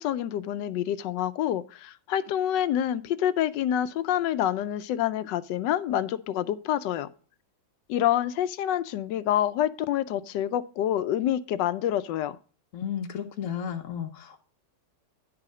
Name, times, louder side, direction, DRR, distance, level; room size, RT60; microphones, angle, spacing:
voice 1, 0.0-7.1 7.9-12.4, left 11 dB, 85° left, 1.3 m, -27 dB
voice 2, 12.7-14.4, left 8 dB, 60° left, 1.0 m, -33 dB
10.5 x 4.9 x 6.0 m
omnidirectional pair, 1.9 m